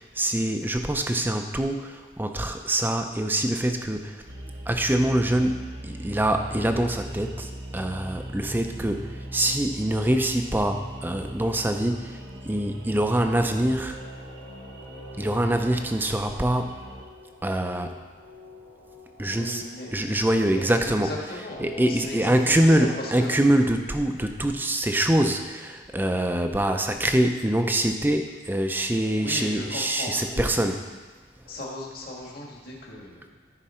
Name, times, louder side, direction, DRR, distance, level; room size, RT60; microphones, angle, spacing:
voice 1, 0.0-4.2 4.7-14.0 15.2-16.7 17.4-17.9 19.2-19.6 19.9-21.1 21.6-30.8, right 1 dB, 10° right, 5 dB, 0.6 m, -24 dB
sound 1, 4.3-17.0, right 1 dB, 80° right, 1.2 m, -40 dB
sound 2, 12.8-23.5, left 1 dB, 85° left, 2.2 m, -47 dB
voice 2, 19.2-19.9 20.5-21.6 21.9-23.3 29.2-30.5 31.4-33.3, left 1 dB, 55° left, -2 dB, 1.8 m, -37 dB
13.5 x 5.3 x 4.4 m, 1.4 s
head